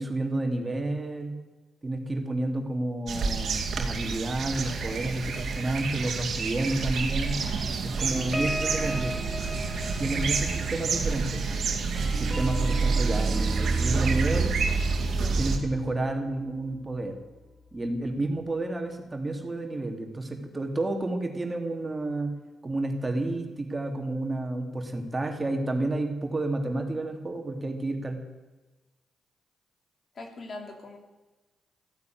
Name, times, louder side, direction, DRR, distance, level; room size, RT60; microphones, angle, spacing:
voice 1, 0.0-1.3 1.8-7.4 8.0-9.1 10.0-11.6 12.1-14.6 15.4-17.2 17.7-22.3 22.6-28.2, right 2 dB, 25° right, 3 dB, 3.0 m, -30 dB
sound 1, 3.1-15.6, right 4 dB, 65° right, 2.3 m, -28 dB
sound 2, 8.0-16.9 17.4-17.6 17.9-18.2, equal, 10° right, 2.4 m, -39 dB
voice 2, 15.1-15.4 30.1-31.0, left 2 dB, 55° left, 3 dB, 3.1 m, -41 dB
15.0 x 9.6 x 9.5 m, 1.2 s
supercardioid pair, 55°, 0 cm